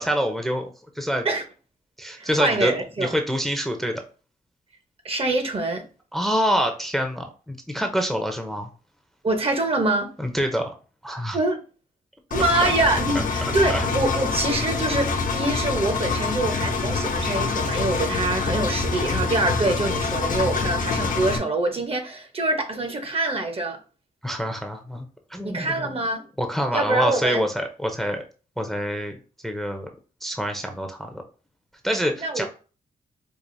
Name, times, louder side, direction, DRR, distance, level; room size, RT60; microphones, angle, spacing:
voice 1, 0.0-1.3 2.0-2.7 3.0-4.0 6.1-8.7 10.2-10.7 11.0-11.4 12.6-12.7 13.7-13.8 24.2-25.1 25.3-25.9 26.4-28.2 28.6-29.1 29.4-29.9 30.2-31.1 31.8-32.5, equal, ahead, 0.5 m, -26 dB
voice 2, 2.2-3.1 5.0-5.8 9.2-10.1 11.3-11.6 12.3-23.8 25.4-26.2 26.7-27.4 32.2-32.5, right 2 dB, 40° right, 0.8 m, -25 dB
Engine, 12.3-21.4, left 4 dB, 60° left, 0.6 m, -25 dB
4.7 x 2.4 x 2.5 m
cardioid pair, 85°, 16 cm